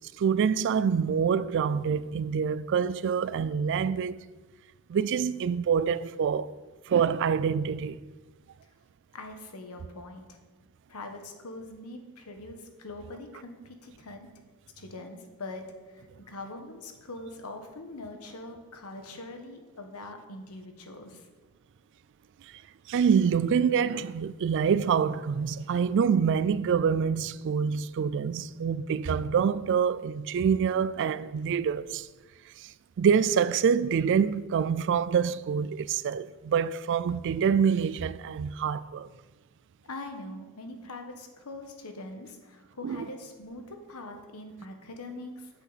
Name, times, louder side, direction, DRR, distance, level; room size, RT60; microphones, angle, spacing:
voice 1, 0.2-4.2 4.9-6.5 6.9-8.0 22.9-32.1 32.6-39.1 42.8-43.1, right 7 dB, 55° right, 0.3 m, -26 dB
voice 2, 9.1-10.4 10.9-14.3 14.8-21.3 25.6-25.7 39.8-45.5, left 2 dB, 80° left, 1.2 m, -43 dB
8.7 x 8.2 x 4.1 m
head